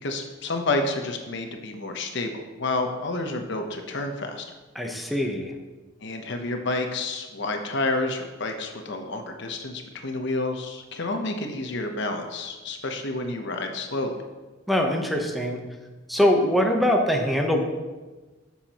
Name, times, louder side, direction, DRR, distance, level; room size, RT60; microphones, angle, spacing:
voice 1, 0.0-4.4 6.0-14.2, left 2 dB, 65° left, 4 dB, 0.9 m, -29 dB
voice 2, 4.8-5.5 14.7-15.6 16.1-17.6, equal, ahead, 2 dB, 0.9 m, -22 dB
11.5 x 7.2 x 3.0 m, 1.2 s
head